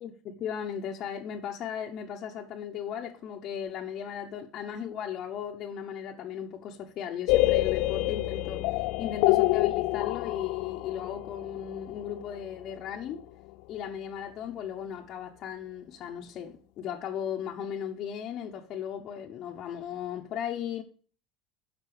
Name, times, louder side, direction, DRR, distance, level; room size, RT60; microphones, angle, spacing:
voice 1, 0.0-8.7 9.0-13.3 13.7-20.8, left 9 dB, 40° left, 1.0 m, -36 dB
sound 1, 7.3-13.0, left 18 dB, 65° left, 0.4 m, -27 dB
12.0 x 5.4 x 4.9 m
cardioid pair, 160°, 0 cm